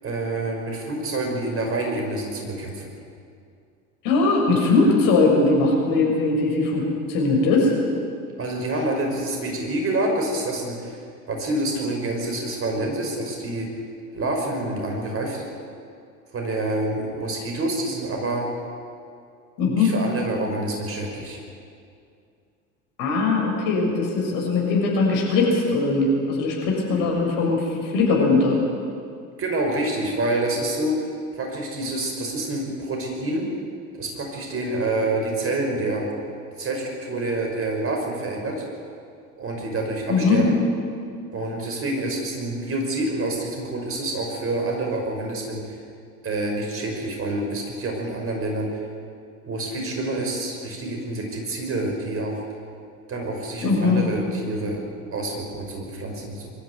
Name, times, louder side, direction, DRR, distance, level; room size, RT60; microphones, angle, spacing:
voice 1, 0.0-2.9 8.4-11.0 11.3-13.7 14.1-15.4 16.3-18.5 19.8-21.4 27.0-27.1 29.4-30.9 31.4-33.5 34.0-36.1 36.6-38.6 39.4-40.5 41.3-45.8 46.2-48.8 49.5-52.4 53.1-54.8 55.1-56.5, right 2 dB, 30° right, 1 dB, 5.8 m, -27 dB
voice 2, 4.0-7.7 19.6-19.9 23.0-28.6 40.1-40.4 53.6-54.0, left 3 dB, 50° left, -1 dB, 6.7 m, -20 dB
23.5 x 13.5 x 9.5 m, 2.4 s
figure-of-eight pair, 75°, 43 cm